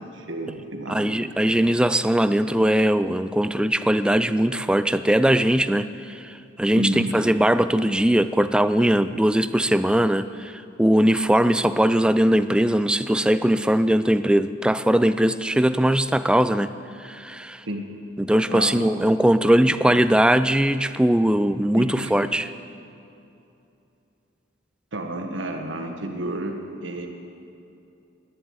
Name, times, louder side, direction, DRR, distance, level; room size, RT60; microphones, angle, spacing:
voice 1, 0.0-1.1 6.7-7.1 17.6-17.9 18.5-19.2 19.8-20.0 21.7-22.3 24.9-27.1, right 1 dB, 75° right, 3 dB, 1.6 m, -31 dB
voice 2, 0.9-16.8 17.0-17.6 18.2-22.5, right 1 dB, 5° right, 13 dB, 0.3 m, -20 dB
11.0 x 10.5 x 9.5 m, 2.8 s
head